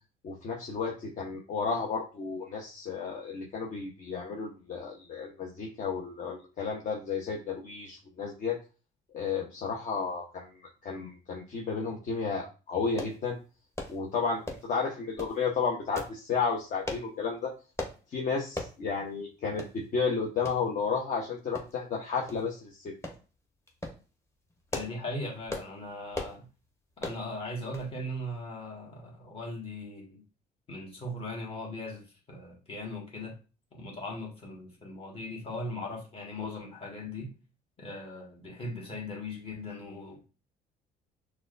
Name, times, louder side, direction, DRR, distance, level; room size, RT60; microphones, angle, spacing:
voice 1, 0.2-8.6 9.1-13.4 13.9-17.5 18.1-22.9, left 5 dB, 50° left, 0.8 m, -32 dB
sound 1, 13.0-13.2 13.7-14.0 14.4-14.7 15.2-15.4 15.9-16.2 16.8-17.1 17.8-18.0 18.5-18.8 19.1-19.2 19.6-19.7 20.4-20.6 21.5-21.9 22.3-22.4 23.0-23.2 23.7-24.0 24.5-25.0 25.5-25.7 26.1-26.4 27.0-27.2 27.7-27.9 28.2-28.3, left 1 dB, 15° left, 0.9 m, -37 dB
voice 2, 24.7-26.5 27.0-30.2 30.7-33.4 33.7-37.3 37.8-40.3, left 1 dB, 35° left, 1.5 m, -39 dB
5.9 x 2.3 x 2.5 m
cardioid pair, 110°, 17 cm